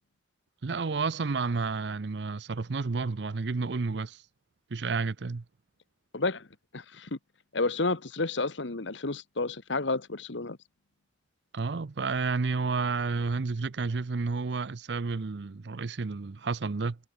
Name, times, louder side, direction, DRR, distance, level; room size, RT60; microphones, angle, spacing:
voice 1, 0.6-4.2 4.7-5.4 11.5-17.0, right 4 dB, 65° right, 0.6 m, -31 dB
voice 2, 6.1-6.5 6.7-7.2 7.5-10.6, left 3 dB, 75° left, 1.5 m, -31 dB
head